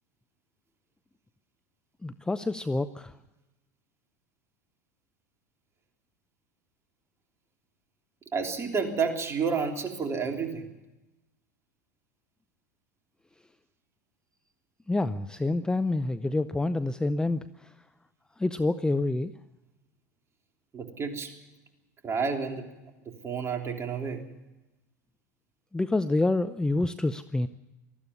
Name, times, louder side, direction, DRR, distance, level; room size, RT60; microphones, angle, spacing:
voice 1, 2.0-3.1 14.9-17.5 18.4-19.3 25.7-27.5, left 2 dB, 10° left, 12 dB, 0.6 m, -27 dB
voice 2, 8.3-10.6 20.7-21.3 22.0-22.7 23.0-24.2, right 5 dB, 30° right, 3 dB, 3.3 m, -30 dB
19.5 x 14.0 x 9.6 m, 1.0 s
hypercardioid pair, 95°, 10 cm